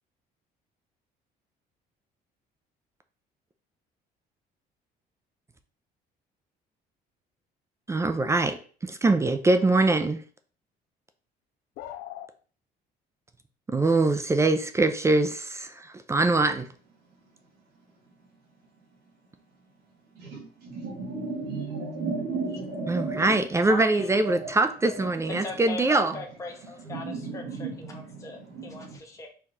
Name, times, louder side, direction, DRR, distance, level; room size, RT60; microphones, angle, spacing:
voice 1, 7.9-10.2 13.7-16.7 22.9-26.1, right 2 dB, 15° right, 0.4 m, -23 dB
sound 1, 11.8-12.3, left 12 dB, 85° left, 0.4 m, -39 dB
voice 2, 20.1-23.4 24.1-24.5 24.8-25.4 26.8-29.0, right 4 dB, 80° right, 2.1 m, -35 dB
voice 3, 23.6-24.2 25.3-29.3, left 2 dB, 20° left, 0.7 m, -39 dB
4.6 x 2.3 x 3.9 m
cardioid pair, 110°, 17 cm